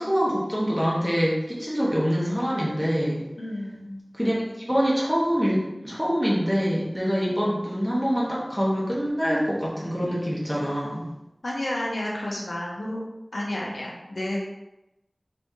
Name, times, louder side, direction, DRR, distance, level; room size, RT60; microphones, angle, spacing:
voice 1, 0.0-3.2 4.1-4.4 4.7-11.1, equal, ahead, -6 dB, 1.3 m, -25 dB
voice 2, 3.4-4.0 11.4-13.0 13.3-14.4, left 1 dB, 80° left, -3 dB, 0.9 m, -31 dB
5.5 x 3.2 x 2.8 m, 0.93 s
wide cardioid pair, 50°, 0 cm